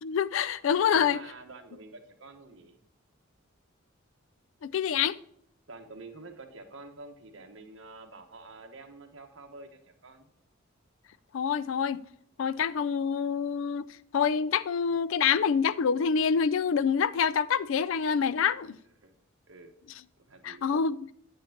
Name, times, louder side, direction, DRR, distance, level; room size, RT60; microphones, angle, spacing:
voice 1, 0.0-1.2 4.6-5.2 11.3-12.0 12.4-13.9 14.1-18.8 20.4-21.0, left 7 dB, 70° left, 0.4 m, -26 dB
voice 2, 0.7-2.8 5.7-10.3 18.6-18.7 19.0-19.1 19.5-19.7 20.2-20.6, right 3 dB, 65° right, 1.2 m, -48 dB
9.1 x 8.4 x 2.9 m
head